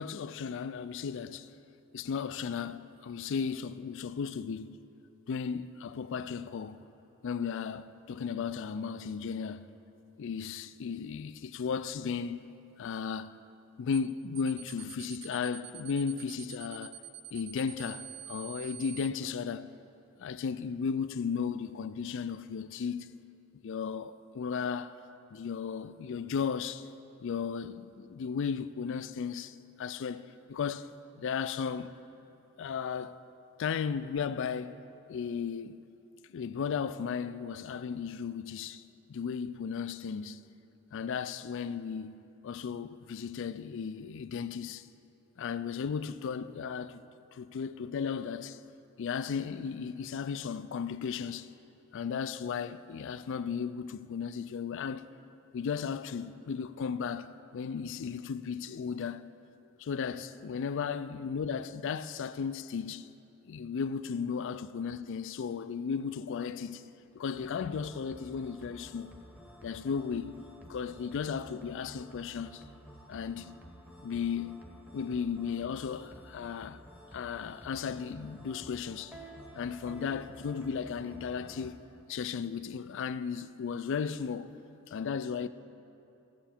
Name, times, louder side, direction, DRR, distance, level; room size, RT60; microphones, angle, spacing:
voice 1, 0.0-1.5 1.9-4.8 5.3-6.8 7.2-9.7 10.2-12.4 12.8-13.4 13.8-17.0 17.3-19.7 20.2-23.2 23.6-25.0 25.3-26.9 27.2-30.9 31.2-31.9 32.6-33.2 33.6-34.8 35.1-35.8 36.3-38.8 39.1-40.4 40.9-44.9 45.4-47.0 47.3-48.6 49.0-51.5 51.9-55.1 55.5-59.2 59.8-63.1 63.5-66.8 67.1-69.1 69.6-70.4 70.7-72.6 73.1-73.5 74.0-74.7 74.9-76.8 77.1-79.2 79.5-81.8 82.1-84.5 84.9-85.5, left 6 dB, 60° left, 0.4 m, -35 dB
sound 1, 13.9-14.1 14.4-19.1, right 10 dB, 50° right, 0.7 m, -46 dB
sound 2, 67.3-81.7, right 1 dB, 5° right, 0.9 m, -51 dB
14.5 x 7.9 x 4.4 m
head